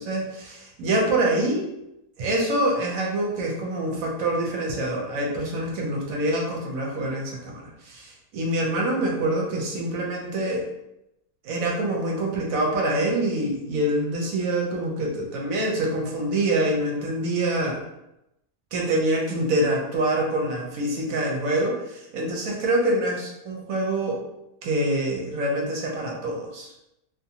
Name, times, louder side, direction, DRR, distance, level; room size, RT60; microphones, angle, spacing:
voice 1, 0.0-1.7 2.2-10.7 11.4-17.8 18.7-24.2 24.6-26.7, right 1 dB, 70° right, 0 dB, 0.9 m, -25 dB
2.5 x 2.4 x 2.7 m, 0.88 s
omnidirectional pair, 1.6 m